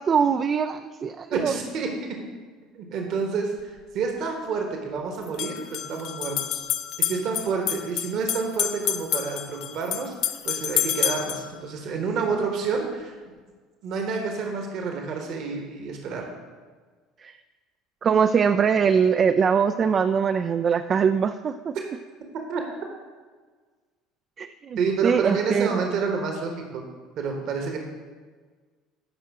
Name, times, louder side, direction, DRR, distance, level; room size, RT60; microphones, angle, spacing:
voice 1, 0.0-1.5 17.2-17.4 18.0-21.8 24.4-26.0, right 6 dB, 35° right, 9 dB, 0.3 m, -22 dB
voice 2, 1.3-1.9 2.7-6.6 7.0-13.1 13.8-16.3 22.5-22.6 24.8-26.8 27.2-27.8, right 5 dB, 55° right, 3 dB, 1.2 m, -29 dB
sound 1, 3.6-3.7 5.2-11.5, left 10 dB, 55° left, 0.5 m, -29 dB
13.5 x 5.4 x 3.6 m, 1.5 s
figure-of-eight pair, 60°, 0 cm